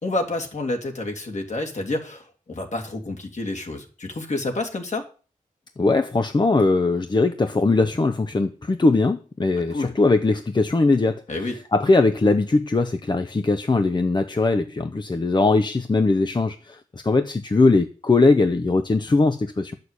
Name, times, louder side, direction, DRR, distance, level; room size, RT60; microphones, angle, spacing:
voice 1, 0.0-5.1 9.7-9.9 11.3-11.5, left 2 dB, 55° left, 2.8 m, -29 dB
voice 2, 5.8-11.2 11.7-16.8 17.0-19.7, left 3 dB, 30° left, 0.8 m, -20 dB
11.5 x 6.7 x 8.3 m
wide cardioid pair, 90°, 14 cm